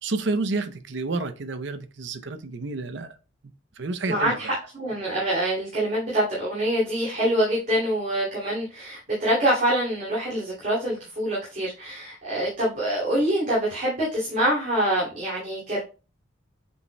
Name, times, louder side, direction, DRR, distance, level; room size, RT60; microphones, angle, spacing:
voice 1, 0.0-3.1 3.8-4.4, right 3 dB, 60° right, 0.6 m, -29 dB
voice 2, 4.1-15.8, right 1 dB, 40° right, 2.6 m, -25 dB
8.1 x 5.3 x 2.2 m
head